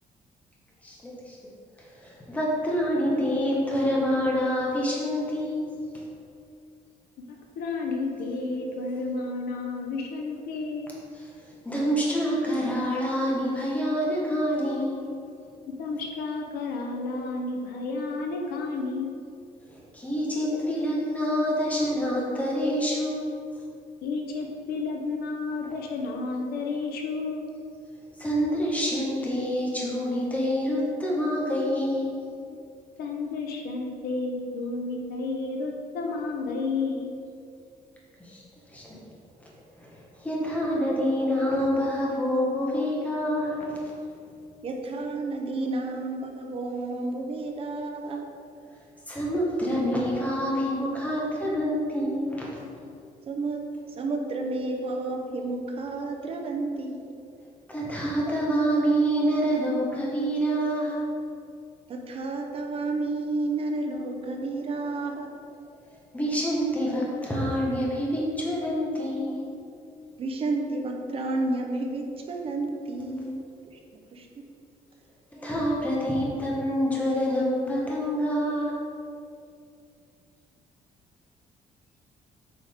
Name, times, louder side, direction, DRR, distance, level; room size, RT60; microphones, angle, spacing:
voice 1, 0.8-1.4 1.8-5.7 11.1-11.3 11.6-15.1 19.7-23.3 28.2-32.2 38.2-38.4 38.7-39.0 39.8-43.8 49.1-52.5 57.7-61.1 66.1-69.5 75.3-78.7, equal, 10° left, -4 dB, 1.3 m, -27 dB
voice 2, 7.6-10.9 15.8-19.1 24.0-27.5 33.0-37.1, left 3 dB, 90° left, 1 dB, 0.9 m, -31 dB
voice 3, 44.6-48.3 53.2-57.0 61.9-65.3 70.2-74.4, right 2 dB, 40° right, 3 dB, 0.7 m, -31 dB
8.1 x 4.9 x 3.6 m, 2.5 s
cardioid pair, 170°, 15 cm